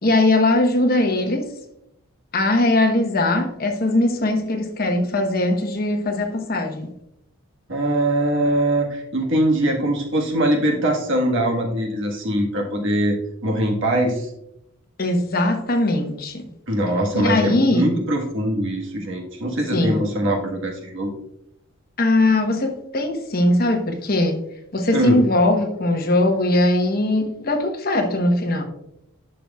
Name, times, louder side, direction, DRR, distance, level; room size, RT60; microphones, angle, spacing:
voice 1, 0.0-1.5 2.3-6.9 15.0-16.5 17.1-17.9 19.7-20.0 22.0-24.4 24.7-28.6, left 2 dB, 45° left, 4 dB, 1.0 m, -20 dB
voice 2, 7.7-13.2 13.4-14.3 16.7-21.1 24.9-25.2, right 1 dB, 55° right, 1 dB, 1.4 m, -22 dB
11.0 x 6.1 x 2.3 m, 0.79 s
head